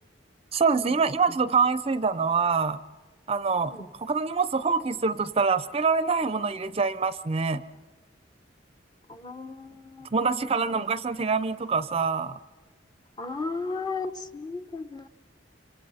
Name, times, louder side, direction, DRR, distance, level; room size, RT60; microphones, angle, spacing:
voice 1, 0.5-2.8 3.3-3.7 4.0-7.6 10.1-12.4, right 5 dB, 35° right, 14 dB, 0.6 m, -25 dB
voice 2, 9.1-10.9 13.2-15.1, left 3 dB, 20° left, 7 dB, 1.0 m, -36 dB
27.5 x 26.5 x 4.2 m, 1.3 s
head